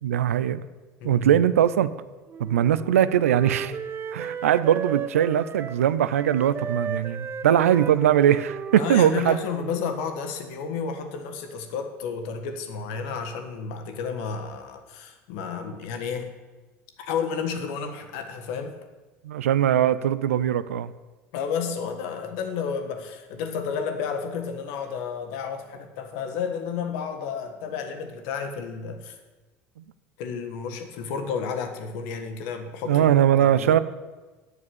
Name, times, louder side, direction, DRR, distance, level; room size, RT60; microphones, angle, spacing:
voice 1, 0.0-0.6 1.0-1.9 2.4-3.7 4.1-9.4 19.2-20.9 32.9-33.8, right 10 dB, 85° right, 15 dB, 0.5 m, -21 dB
voice 2, 1.0-1.4 8.8-16.3 17.0-18.7 21.3-29.2 30.2-33.1 33.4-33.8, left 6 dB, 70° left, 6 dB, 1.5 m, -31 dB
Wind instrument woodwind instrument, 2.3-10.0, right 7 dB, 35° right, 0.7 m, -35 dB
8.4 x 6.9 x 8.6 m, 1.2 s
hypercardioid pair, 70°, 7 cm